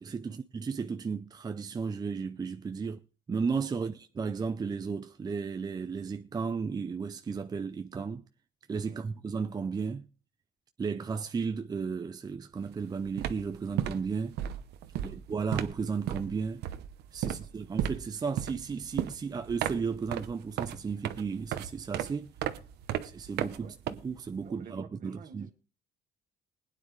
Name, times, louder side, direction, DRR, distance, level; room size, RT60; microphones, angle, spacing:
voice 1, 0.0-3.0 3.3-8.2 8.7-10.1 10.8-14.4 15.0-16.6 17.1-22.3 23.0-25.5, right 5 dB, 25° right, 0.6 m, -34 dB
sound 1, 12.6-12.8 13.0-24.5, right 11 dB, 80° right, 0.9 m, -35 dB
voice 2, 24.4-25.5, right 7 dB, 55° right, 1.7 m, -52 dB
20.5 x 9.6 x 3.2 m
cardioid pair, 110°, 17 cm